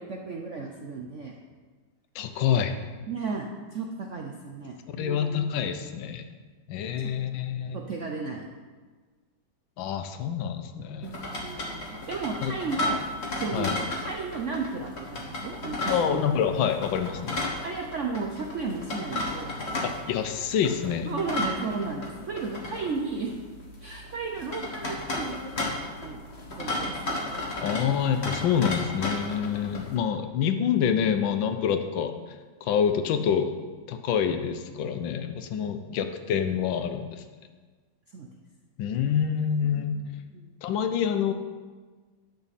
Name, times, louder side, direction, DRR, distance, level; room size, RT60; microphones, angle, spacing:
voice 1, 0.0-1.3 3.1-5.7 7.7-8.5 11.0-13.0 13.4-16.4 17.6-19.6 21.0-23.4 23.8-26.2 26.5-27.2 35.6-35.9 38.1-38.3 39.6-40.0 40.3-40.5, right 4 dB, 70° right, 1 dB, 0.7 m, -34 dB
voice 2, 2.1-2.8 4.9-6.2 6.7-7.8 9.8-11.1 12.4-12.5 13.5-13.8 15.9-17.4 19.8-21.1 27.6-32.1 32.6-33.5 33.9-37.2 38.8-40.0 40.6-41.3, left 8 dB, 80° left, 8 dB, 1.4 m, -27 dB
sound 1, 11.0-30.0, left 1 dB, 35° left, 1.5 m, -34 dB
10.5 x 7.0 x 4.2 m, 1.4 s
omnidirectional pair, 2.1 m